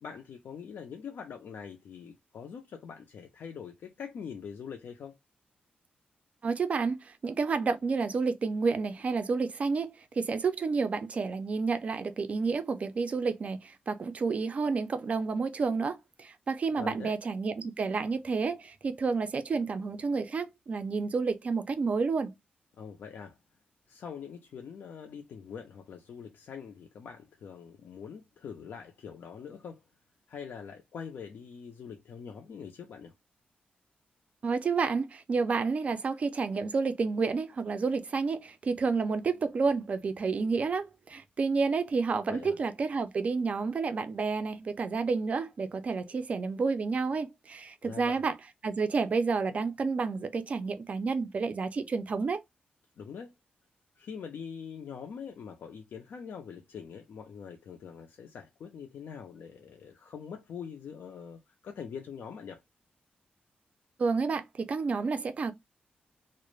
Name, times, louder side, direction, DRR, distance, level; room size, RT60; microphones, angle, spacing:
voice 1, 0.0-5.2 16.8-17.2 22.8-23.4 23.9-29.8 30.3-33.1 42.3-42.6 47.8-48.2 53.0-53.3 54.0-62.6, left 6 dB, 75° left, 0.4 m, -43 dB
voice 2, 6.4-22.3 34.4-48.3 48.6-52.4 64.0-65.5, right 4 dB, 40° right, 0.3 m, -30 dB
2.3 x 2.0 x 3.0 m
wide cardioid pair, 140°, 3 cm